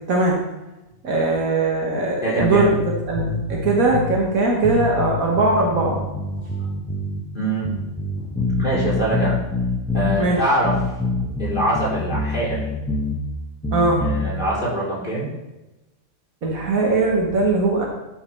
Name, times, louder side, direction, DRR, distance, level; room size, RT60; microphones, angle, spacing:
voice 1, 1.0-2.8 3.1-6.0 6.4-6.5 10.2-10.4 13.7-14.0 16.4-17.9, right 3 dB, 75° right, -1 dB, 1.8 m, -20 dB
voice 2, 2.2-2.7 7.3-7.7 8.6-9.4 9.9-10.7 11.4-12.7 14.0-15.3, right 1 dB, 35° left, -8 dB, 4.0 m, -23 dB
sound 1, 2.4-4.2 4.6-7.2 7.6-10.2 10.6-13.2 13.6-14.3, left 2 dB, 5° left, 1.0 m, -25 dB
11.5 x 5.7 x 4.5 m, 1.0 s
omnidirectional pair, 1.5 m